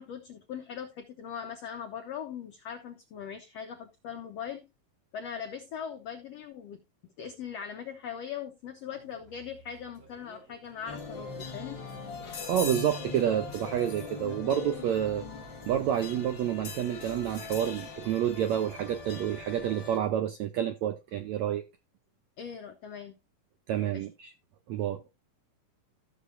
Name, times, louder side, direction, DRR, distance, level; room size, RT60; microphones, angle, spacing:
voice 1, 0.0-4.6 5.1-11.8 22.4-23.2 23.9-24.1, left 8 dB, 85° left, 1.4 m, -40 dB
sound 1, 8.8-17.3, right 2 dB, 30° right, 2.7 m, -55 dB
sound 2, 10.8-20.0, left 5 dB, 35° left, 2.3 m, -41 dB
voice 2, 12.5-15.2 15.6-21.6 23.7-24.3 24.7-25.0, right 10 dB, 80° right, 1.6 m, -29 dB
14.5 x 6.9 x 2.6 m
omnidirectional pair, 4.1 m